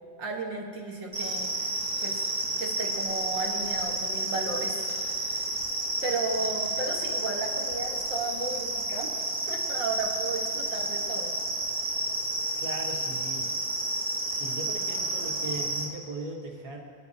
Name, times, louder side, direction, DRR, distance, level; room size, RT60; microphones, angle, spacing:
voice 1, 0.2-1.7 2.0-2.2 2.6-5.4 6.0-11.3, right 3 dB, 50° right, -1 dB, 1.5 m, -34 dB
sound 1, 1.1-15.9, right 2 dB, 10° right, 1.2 m, -31 dB
voice 2, 12.6-13.5 14.3-16.8, right 2 dB, 70° right, -1 dB, 0.8 m, -38 dB
27.5 x 10.0 x 2.8 m, 2.3 s
omnidirectional pair, 3.7 m